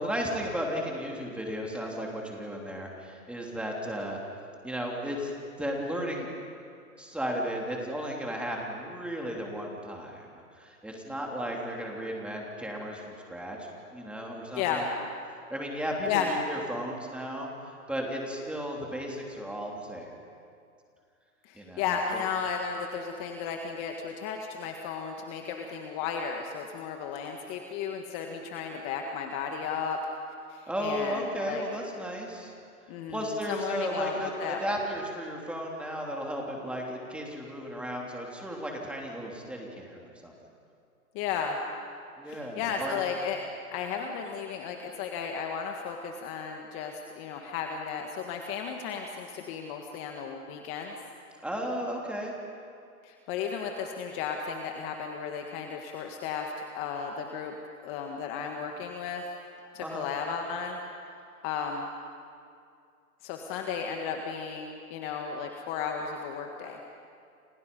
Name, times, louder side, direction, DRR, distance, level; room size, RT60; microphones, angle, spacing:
voice 1, 0.0-4.2 4.6-5.3 5.6-6.3 7.0-10.3 10.5-14.8 15.5-20.1 21.5-22.2 30.7-32.5 33.1-40.3 42.2-43.0 51.4-52.3 59.8-60.1, equal, 5° right, -1 dB, 3.2 m, -34 dB
voice 2, 14.5-14.9 16.1-16.3 21.4-30.0 30.5-31.6 32.9-34.8 41.1-41.6 42.2-43.4 43.7-51.0 53.0-57.5 57.8-59.2 59.7-60.8 61.4-61.9 63.2-66.8, left 6 dB, 30° left, 3 dB, 1.7 m, -34 dB
29.5 x 27.5 x 5.4 m, 2.4 s
hypercardioid pair, 145°, 44 cm